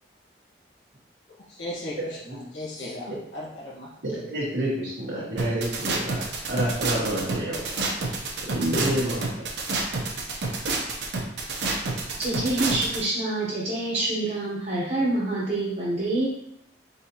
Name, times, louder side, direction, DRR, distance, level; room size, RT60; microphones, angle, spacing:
voice 1, 1.5-3.9, left 1 dB, 90° left, -5 dB, 1.4 m, -37 dB
voice 2, 4.0-7.7 8.4-9.4, right 1 dB, 90° right, -9 dB, 1.2 m, -28 dB
sound 1, 5.4-13.0, right 3 dB, 70° right, 0.8 m, -28 dB
voice 3, 12.2-16.3, right 2 dB, 40° right, -8 dB, 0.9 m, -26 dB
4.1 x 4.1 x 2.9 m, 0.75 s
head